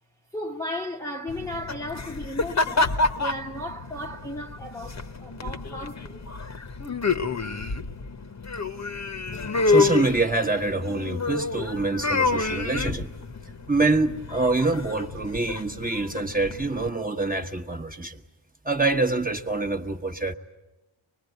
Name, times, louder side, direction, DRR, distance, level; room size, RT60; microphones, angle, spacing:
voice 1, 0.3-6.3, left 1 dB, 5° left, 1.0 m, -35 dB
sound 1, 1.3-16.9, left 3 dB, 35° left, 1.1 m, -29 dB
voice 2, 9.6-13.1 13.7-18.2 18.6-20.3, right 3 dB, 20° right, 1.2 m, -25 dB
24.5 x 20.5 x 9.3 m
wide cardioid pair, 100°, 48 cm